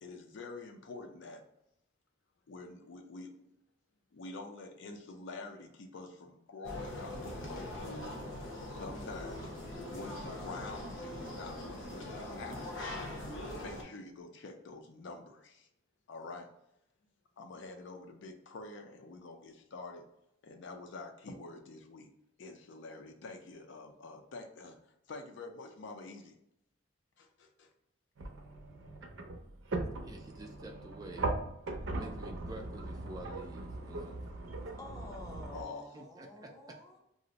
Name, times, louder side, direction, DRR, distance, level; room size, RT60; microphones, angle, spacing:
voice 1, 0.0-1.4 2.5-3.5 4.1-8.2 8.7-9.5 9.9-12.8 13.5-15.7 16.1-16.5 17.4-20.0 20.4-22.1 22.4-24.8 25.1-26.3 27.2-27.7 35.5-35.8, left 3 dB, 70° left, 4 dB, 0.4 m, -47 dB
sound 1, 6.6-13.8, left 1 dB, 85° left, 0.8 m, -42 dB
sound 2, 28.2-35.6, right 2 dB, 75° right, 0.5 m, -39 dB
voice 2, 30.0-31.3 31.9-34.2 35.9-36.5, right 1 dB, 20° right, 2 dB, 0.3 m, -48 dB
voice 3, 34.8-37.0, left 1 dB, 20° left, -1 dB, 0.7 m, -49 dB
2.5 x 2.0 x 3.8 m, 0.81 s
head